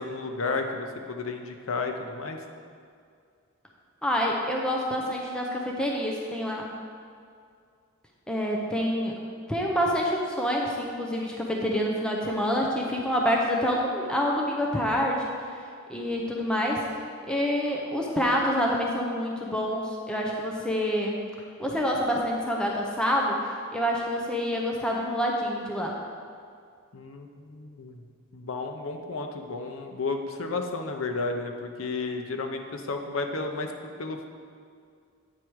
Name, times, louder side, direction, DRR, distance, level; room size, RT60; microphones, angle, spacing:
voice 1, 0.0-2.4 26.9-28.1 28.3-34.3, left 3 dB, 85° left, 4 dB, 0.7 m, -32 dB
voice 2, 4.0-6.7 8.3-9.1 9.5-15.6 15.9-16.8 17.3-21.2 21.6-26.0, equal, 5° left, -2 dB, 0.6 m, -27 dB
8.6 x 4.8 x 4.6 m, 2.2 s
head